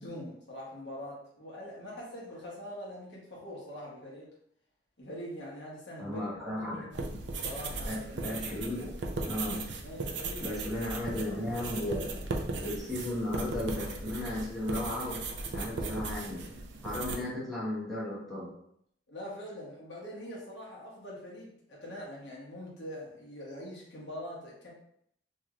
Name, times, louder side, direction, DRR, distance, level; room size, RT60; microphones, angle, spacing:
voice 1, 0.0-4.3 5.0-6.2 6.6-7.0 7.4-8.3 9.8-10.6 19.1-24.7, equal, 70° left, -4 dB, 1.1 m, -43 dB
voice 2, 6.0-6.9 7.8-9.0 9.2-9.7 10.4-12.3 12.6-15.2 15.5-16.5 16.8-18.5, left 1 dB, ahead, -9 dB, 1.1 m, -35 dB
sound 1, 6.9-17.2, right 3 dB, 70° right, 0.4 m, -37 dB
3.0 x 2.9 x 2.4 m, 0.70 s
head